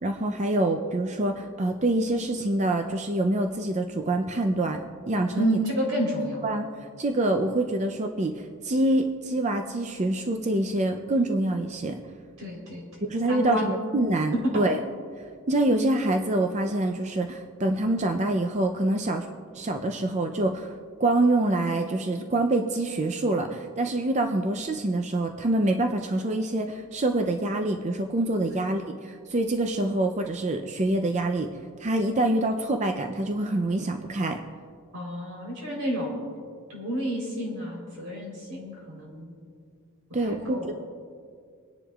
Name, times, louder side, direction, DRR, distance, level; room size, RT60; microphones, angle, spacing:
voice 1, 0.0-4.8 5.1-5.6 6.4-6.7 7.0-12.0 13.0-14.8 15.5-19.3 19.5-34.4 40.1-40.7, right 2 dB, 35° right, 4 dB, 0.5 m, -26 dB
voice 2, 5.4-6.4 12.4-12.8 13.3-13.7 14.4-14.5 28.4-28.7 34.9-36.2 36.7-39.3 40.3-40.8, equal, 85° right, -1 dB, 3.7 m, -30 dB
24.5 x 10.0 x 2.4 m, 2.1 s
head